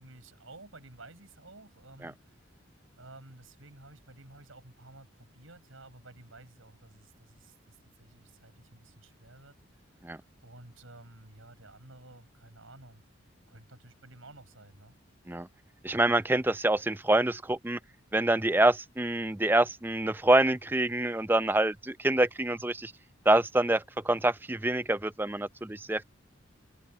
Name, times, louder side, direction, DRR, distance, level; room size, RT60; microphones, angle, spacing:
voice 1, 0.0-2.4 3.0-9.5 10.4-13.0 13.5-15.0, right 2 dB, 85° right, 6.1 m, -52 dB
voice 2, 15.8-17.8 18.1-22.9 23.3-26.0, right 1 dB, 10° right, 0.5 m, -26 dB
head